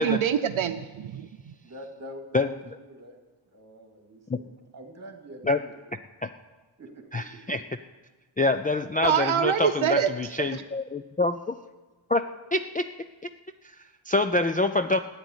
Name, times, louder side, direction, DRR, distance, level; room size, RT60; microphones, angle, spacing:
voice 1, 0.0-1.5 9.0-10.1, right 8 dB, 75° right, 8 dB, 0.8 m, -25 dB
voice 2, 1.6-3.2 3.5-5.7 6.8-7.2, equal, 35° right, 2 dB, 2.6 m, -44 dB
voice 3, 7.1-7.6 8.4-11.5 12.1-12.2 12.5-12.9 13.6-15.0, left 2 dB, 20° left, 8 dB, 0.4 m, -26 dB
14.5 x 9.6 x 8.0 m, 1.2 s
wide cardioid pair, 135°, 48 cm